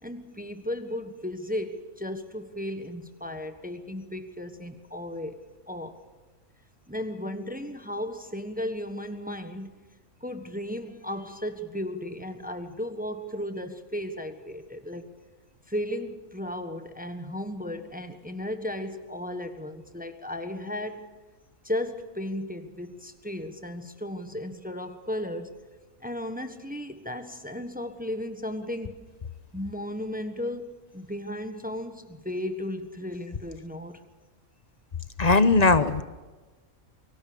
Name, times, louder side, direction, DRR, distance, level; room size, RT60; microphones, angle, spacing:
voice 1, 0.0-5.4 5.7-6.0 6.9-9.7 10.2-15.1 15.7-21.0 21.6-25.5 26.0-29.1 29.5-34.0, left 1 dB, 5° right, 1.3 m, -35 dB
voice 2, 35.2-36.0, left 3 dB, 35° left, 0.9 m, -19 dB
24.0 x 17.5 x 6.9 m
omnidirectional pair, 1.4 m